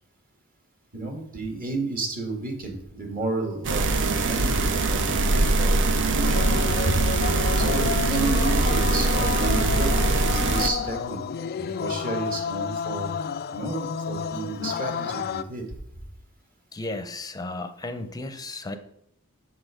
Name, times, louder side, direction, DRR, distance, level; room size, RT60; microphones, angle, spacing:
voice 1, 0.9-6.4 7.7-11.2 11.7-13.1 13.5-15.6, right 3 dB, 40° right, 2 dB, 1.9 m, -32 dB
sound 1, 3.6-10.7, right 3 dB, 55° right, 0.7 m, -22 dB
sound 2, 6.2-15.4, left 7 dB, 45° left, 0.3 m, -31 dB
voice 2, 16.7-18.8, left 2 dB, 15° left, 8 dB, 0.7 m, -34 dB
6.7 x 6.5 x 5.0 m, 0.77 s
head